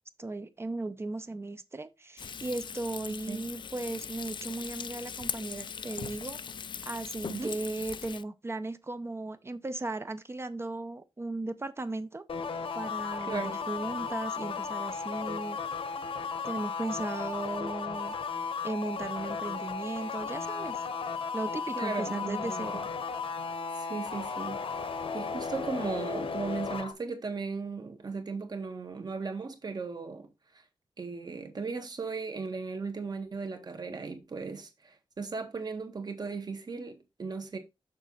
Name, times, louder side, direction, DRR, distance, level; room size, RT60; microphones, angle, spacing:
voice 1, 0.2-6.4 6.8-12.2 12.7-15.6 16.4-18.1 18.6-20.8 21.3-22.8, right 2 dB, 25° right, 0.7 m, -36 dB
Frying (food), 2.2-8.2, left 6 dB, 60° left, 0.4 m, -40 dB
sound 1, 12.3-26.9, left 5 dB, 75° left, 1.0 m, -35 dB
voice 2, 13.2-13.6 21.7-22.8 23.8-24.8 25.1-30.3 30.5-30.6 31.0-37.6, right 4 dB, 45° right, 1.7 m, -37 dB
6.8 x 6.2 x 4.0 m
wide cardioid pair, 160°, 9 cm